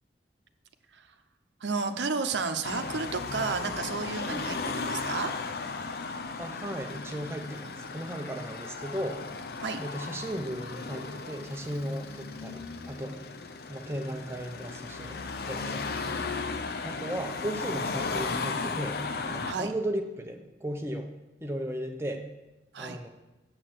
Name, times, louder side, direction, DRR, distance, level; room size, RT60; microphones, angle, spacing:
voice 1, 1.6-5.3 9.6-9.8 19.5-19.7 22.7-23.0, right 4 dB, 80° right, 7 dB, 0.8 m, -32 dB
Car passing by / Traffic noise roadway noise / Engine, 2.6-19.5, left 4 dB, 60° left, 0.6 m, -36 dB
voice 2, 6.4-9.2 9.8-13.2 13.7-15.8 16.1-16.3 16.8-19.0 19.3-21.1 21.4-22.2 22.8-23.1, equal, 15° right, 4 dB, 0.9 m, -36 dB
7.8 x 6.6 x 7.5 m, 1.0 s
head